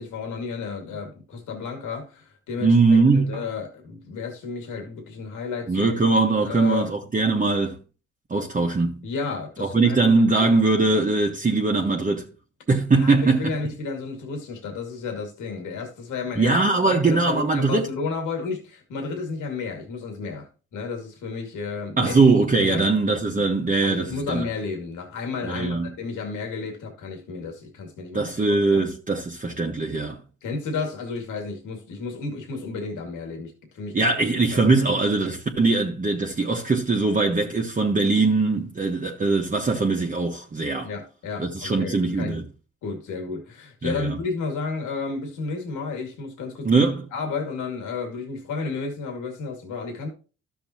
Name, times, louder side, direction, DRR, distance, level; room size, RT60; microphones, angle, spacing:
voice 1, 0.0-6.0 6.4-6.9 9.0-10.5 13.0-16.6 16.8-20.5 20.7-22.2 22.6-22.9 23.8-28.9 30.4-34.0 34.5-34.8 40.8-42.4 42.8-46.8 47.1-50.1, left 4 dB, 80° left, 2.3 m, -32 dB
voice 2, 2.6-3.4 5.7-7.8 8.3-9.0 9.6-12.3 12.7-13.5 16.4-17.9 22.0-24.4 25.4-25.9 28.1-30.2 33.9-40.9 41.4-42.4 43.8-44.2 46.6-47.0, right 3 dB, 25° right, 1.3 m, -21 dB
12.5 x 7.0 x 2.9 m
cardioid pair, 90°, 30 cm